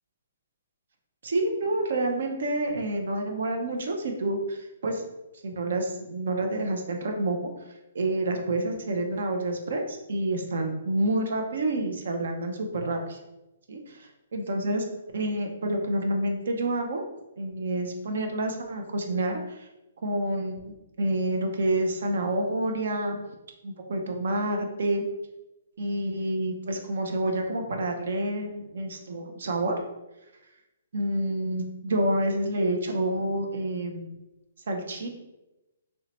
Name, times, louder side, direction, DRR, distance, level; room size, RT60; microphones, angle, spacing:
voice 1, 1.2-5.1 5.4-7.4 7.9-13.2 13.7-13.8 14.3-14.8 15.1-17.0 17.4-19.7 20.0-23.2 23.6-25.0 25.8-29.8 30.9-34.1 34.7-35.1, right 1 dB, 70° right, 3 dB, 0.4 m, -28 dB
2.7 x 2.1 x 2.8 m, 0.98 s
hypercardioid pair, 135°, 0 cm